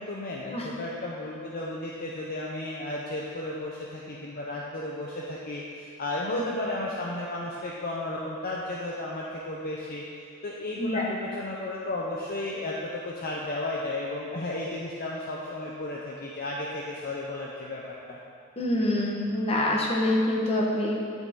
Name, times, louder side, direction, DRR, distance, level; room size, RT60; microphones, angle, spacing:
voice 1, 0.0-10.0 10.4-18.2, left 2 dB, 45° left, -4 dB, 0.7 m, -34 dB
voice 2, 18.6-21.0, left 1 dB, 30° left, -2 dB, 1.3 m, -26 dB
11.0 x 6.6 x 3.8 m, 2.4 s
head